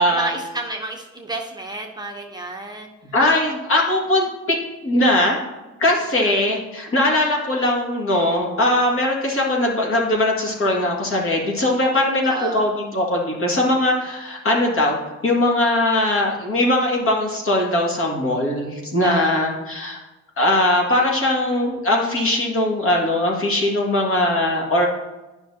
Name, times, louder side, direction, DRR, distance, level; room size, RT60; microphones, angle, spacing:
voice 1, 0.1-2.9 6.2-6.4 12.2-12.6 19.0-19.5, right 2 dB, 15° right, 0 dB, 0.8 m, -31 dB
voice 2, 3.1-4.6 4.8-5.4 5.8-15.0 15.2-20.0 20.4-24.9, left 1 dB, 45° left, -1 dB, 2.0 m, -20 dB
10.0 x 5.8 x 2.8 m, 1.1 s
cardioid pair, 90°, 30 cm